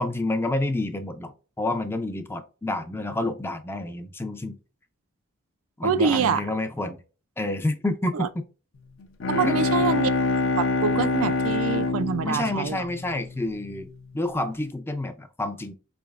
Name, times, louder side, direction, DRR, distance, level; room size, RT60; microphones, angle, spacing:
voice 1, 0.0-4.6 5.8-7.0 7.4-8.4 9.4-9.6 12.2-15.7, left 2 dB, 10° left, 0.4 m, -29 dB
voice 2, 5.8-6.5 8.1-8.3 9.3-10.1 10.6-12.9, right 6 dB, 80° right, 0.4 m, -25 dB
Bowed string instrument, 9.0-13.7, left 3 dB, 65° left, 0.6 m, -26 dB
4.7 x 3.3 x 2.3 m
head